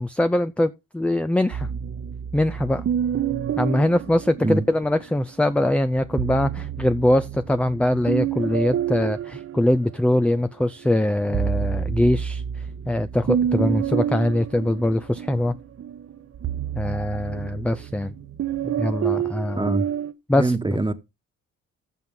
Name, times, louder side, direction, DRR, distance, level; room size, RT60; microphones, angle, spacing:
voice 1, 0.0-1.7 2.3-2.8 3.6-12.4 12.9-15.6 16.8-18.1 18.6-19.7 20.3-20.8, left 1 dB, 5° left, 0.5 m, -22 dB
sound 1, 1.5-5.0 6.0-10.4 10.8-20.1, right 9 dB, 50° right, 1.0 m, -29 dB
voice 2, 19.5-19.8 20.4-20.9, right 2 dB, 15° right, 1.3 m, -23 dB
15.0 x 6.0 x 3.8 m
supercardioid pair, 70°, 29 cm